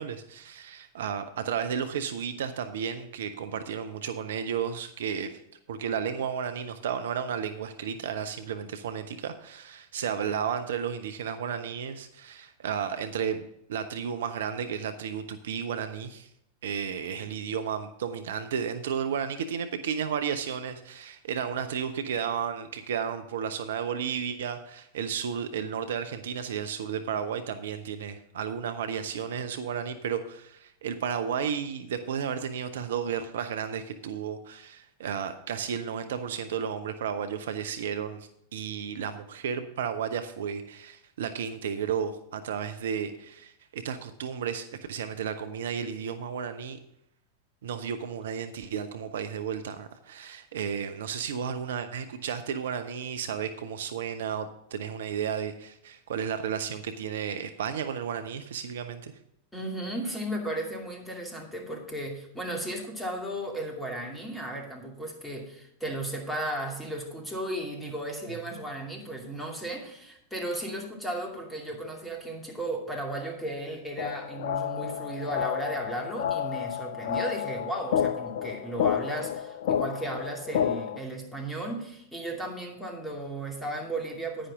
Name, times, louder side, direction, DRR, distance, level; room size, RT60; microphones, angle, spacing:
voice 1, 0.0-5.4 5.7-16.3 16.6-46.8 47.6-59.1, right 7 dB, 60° right, 10 dB, 0.7 m, -33 dB
voice 2, 59.5-84.5, right 1 dB, 5° left, 1 dB, 2.5 m, -35 dB
sound 1, 74.0-81.0, left 9 dB, 55° left, 0.4 m, -30 dB
10.5 x 9.8 x 3.6 m, 0.80 s
figure-of-eight pair, 90°, 0 cm